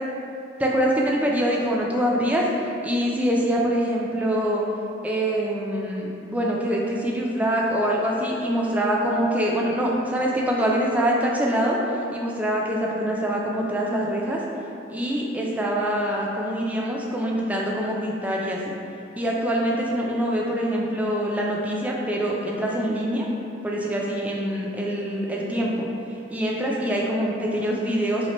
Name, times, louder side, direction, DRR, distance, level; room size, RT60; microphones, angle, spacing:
voice 1, 0.6-4.6 5.0-11.8 12.1-14.4 14.9-18.7 19.2-23.3 23.6-25.9 26.3-28.3, equal, 10° right, -3 dB, 0.3 m, -24 dB
3.0 x 2.1 x 4.0 m, 2.6 s
head